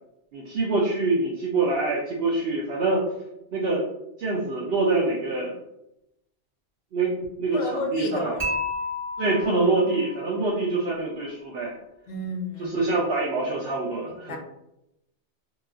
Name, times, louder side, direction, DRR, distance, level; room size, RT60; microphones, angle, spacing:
voice 1, 0.3-3.0 3.5-3.8 4.2-5.5 6.9-8.3 9.2-11.8 12.6-14.4, right 3 dB, 65° right, -4 dB, 0.7 m, -25 dB
voice 2, 7.5-8.3 12.1-12.8 14.1-14.4, left 1 dB, 75° left, 3 dB, 0.8 m, -31 dB
Dishes pots and pans / Chink clink, 8.4-10.5, left 2 dB, 10° right, 1.1 m, -32 dB
2.9 x 2.3 x 2.4 m, 0.85 s
omnidirectional pair, 1.1 m